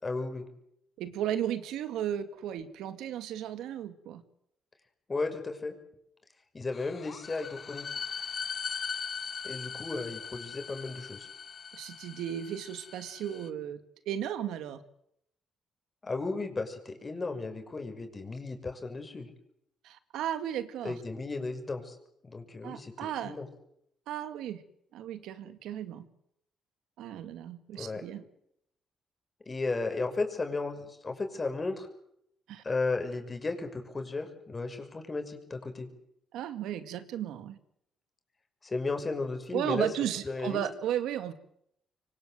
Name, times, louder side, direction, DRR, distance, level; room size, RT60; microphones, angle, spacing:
voice 1, 0.0-0.5 5.1-5.7 6.5-7.9 9.4-11.3 16.0-19.3 20.8-22.0 22.2-23.5 27.7-28.0 29.4-31.9 32.6-35.9 38.6-39.9 40.2-40.6, left 3 dB, 30° left, 6 dB, 6.1 m, -34 dB
voice 2, 1.0-4.2 11.7-13.8 14.1-14.8 19.8-20.9 22.6-23.4 24.1-24.6 24.9-26.1 27.0-28.2 32.5-32.6 36.3-37.6 39.5-41.3, right 10 dB, 85° right, 10 dB, 2.2 m, -35 dB
sound 1, 6.7-13.5, left 6 dB, 45° left, 1.4 m, -40 dB
25.5 x 24.5 x 7.9 m, 0.74 s
cardioid pair, 90°, 0 cm